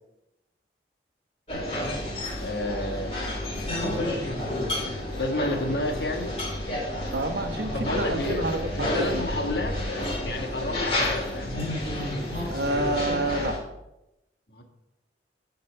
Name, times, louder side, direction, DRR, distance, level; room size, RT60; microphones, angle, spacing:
sound 1, 1.5-13.6, left 1 dB, 35° left, 3.4 m, -30 dB
voice 1, 2.4-3.1 3.7-4.2 5.2-6.3 7.7-11.5 14.5-14.6, left 1 dB, 65° left, 3 dB, 1.6 m, -30 dB
voice 2, 7.1-8.6 9.0-9.2 12.5-13.6, right 2 dB, 65° right, 6 dB, 1.1 m, -28 dB
9.7 x 5.7 x 5.7 m, 0.91 s
head